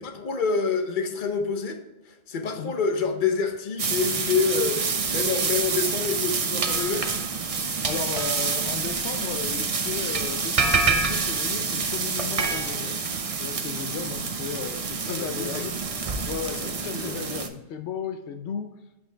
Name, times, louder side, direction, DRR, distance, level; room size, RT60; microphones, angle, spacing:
voice 1, 0.0-1.8 2.0-7.1 15.0-15.6 16.6-17.1, left 5 dB, 50° left, 6 dB, 1.0 m, -27 dB
sound 1, 3.8-17.5, right 4 dB, 40° right, 0.6 m, -27 dB
voice 2, 7.8-13.0 13.4-15.7 16.3-18.7, left 6 dB, 80° left, 7 dB, 0.9 m, -35 dB
7.8 x 5.6 x 3.3 m, 1.0 s
omnidirectional pair, 1.1 m